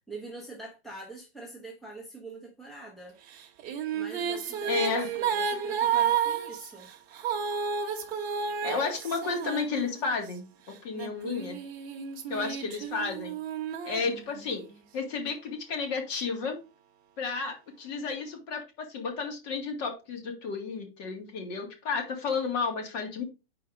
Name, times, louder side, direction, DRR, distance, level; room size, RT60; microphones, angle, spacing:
voice 1, 0.1-3.2 3.9-6.9, right 3 dB, ahead, 0.9 m, -44 dB
sound 1, 3.3-10.3 10.9-14.7, right 7 dB, 25° right, 1.2 m, -32 dB
voice 2, 4.7-5.1 8.6-11.6 12.3-13.3 13.8-14.6 14.9-16.6 17.2-23.2, left 4 dB, 45° left, 2.1 m, -32 dB
4.8 x 4.6 x 5.0 m
hypercardioid pair, 150°, 31 cm